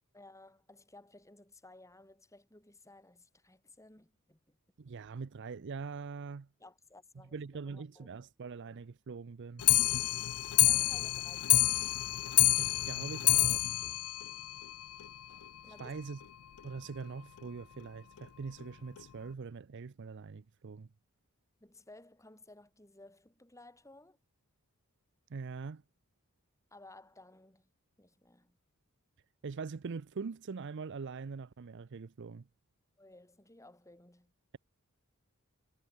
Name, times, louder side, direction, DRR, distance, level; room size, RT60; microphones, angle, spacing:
voice 1, 0.1-4.6 6.6-7.4 7.7-8.1 10.6-11.9 15.6-15.9 21.6-24.2 26.7-27.7 28.0-28.6 33.0-34.3, left 2 dB, 15° left, 7.3 m, -57 dB
voice 2, 4.8-6.5 7.3-9.7 12.6-13.7 15.8-16.2 16.6-20.9 25.3-25.8 29.4-32.5, right 5 dB, 55° right, 0.5 m, -43 dB
Clock, 9.6-15.1 15.4-15.5 15.8-15.9 16.2-16.3 16.6-16.7 17.4-17.5 18.2-18.3 19.0-19.1, left 18 dB, 80° left, 0.5 m, -28 dB
head